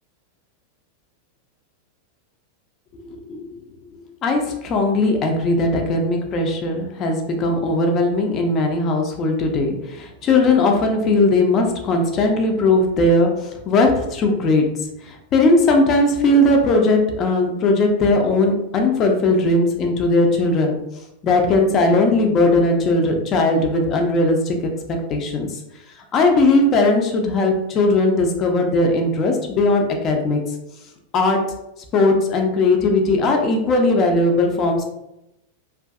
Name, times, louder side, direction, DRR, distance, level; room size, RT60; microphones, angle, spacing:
voice 1, 4.2-14.7 15.0-20.8 21.2-24.6 25.1-25.6 26.1-30.4 31.1-31.4 31.9-34.8, left 2 dB, 30° left, 3 dB, 0.4 m, -18 dB
2.5 x 2.3 x 2.3 m, 0.88 s
figure-of-eight pair, 90°, 0 cm